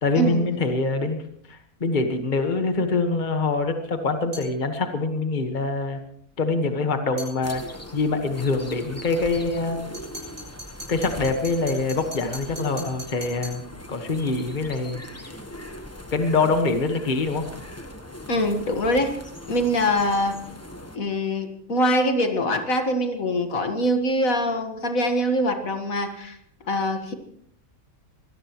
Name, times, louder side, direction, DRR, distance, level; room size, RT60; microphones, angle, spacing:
voice 1, 0.0-1.2 1.5-6.0 6.4-7.6 7.9-9.8 10.9-13.6 13.9-15.3 16.1-17.5, left 3 dB, 35° left, 6 dB, 1.6 m, -24 dB
sound 1, 4.3-4.6 7.2-7.4 9.9-13.7, right 1 dB, 80° right, 8.7 m, -40 dB
sound 2, 7.4-21.0, left 1 dB, 10° left, 1.2 m, -40 dB
voice 2, 9.5-9.9 18.3-19.1 19.5-20.4 20.9-26.4 26.7-27.1, equal, 70° left, 5 dB, 2.1 m, -24 dB
24.0 x 18.0 x 3.1 m, 0.69 s
omnidirectional pair, 1.5 m